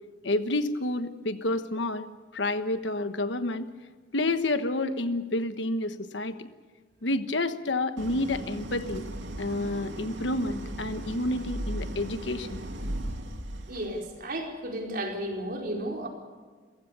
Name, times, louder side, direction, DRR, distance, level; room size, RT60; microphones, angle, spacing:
voice 1, 0.2-2.1 2.3-3.7 4.1-6.5 7.0-9.0 9.4-12.7, left 2 dB, 75° left, 10 dB, 1.3 m, -29 dB
Idling, 8.0-14.0, right 1 dB, 85° right, 2.6 m, -37 dB
voice 2, 13.7-16.1, right 1 dB, 55° right, 1 dB, 4.6 m, -33 dB
29.0 x 15.5 x 6.9 m, 1.5 s
head